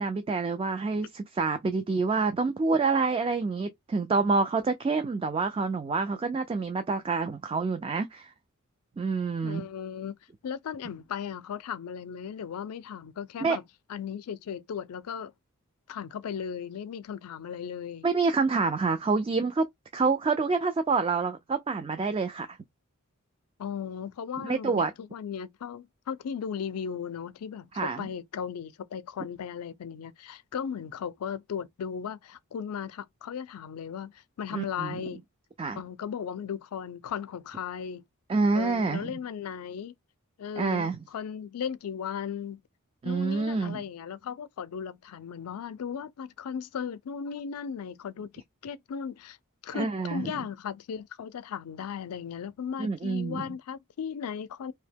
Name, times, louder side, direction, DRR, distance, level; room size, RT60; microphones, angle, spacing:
voice 1, 0.0-8.3 9.0-9.7 13.4-13.6 18.0-19.6 19.9-22.6 24.4-24.9 27.7-28.1 34.5-35.0 35.6-35.8 38.3-39.1 40.6-41.0 43.0-43.8 49.7-50.3 52.8-53.5, right 4 dB, 25° right, 0.3 m, -27 dB
voice 2, 9.4-13.6 13.9-15.3 15.9-18.1 23.6-35.2 35.7-38.0 38.5-39.9 40.4-42.6 43.0-49.4 49.6-54.7, left 7 dB, 85° left, 0.4 m, -36 dB
2.7 x 2.1 x 3.4 m
head